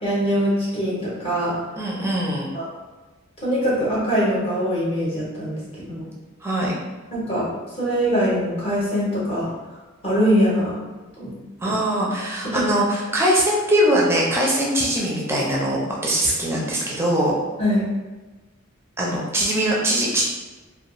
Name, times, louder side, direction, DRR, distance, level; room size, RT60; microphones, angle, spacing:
voice 1, 0.0-1.6 2.5-2.7 3.4-6.1 7.1-7.4 7.8-9.5 10.0-10.7 11.2-11.3 11.6-11.7 12.5-12.6 17.6-17.8, equal, 30° left, -7 dB, 0.7 m, -22 dB
voice 2, 1.8-2.5 6.4-6.7 11.6-17.3 19.0-20.2, right 1 dB, 10° right, -4 dB, 0.4 m, -21 dB
2.3 x 2.2 x 2.9 m, 1.2 s
head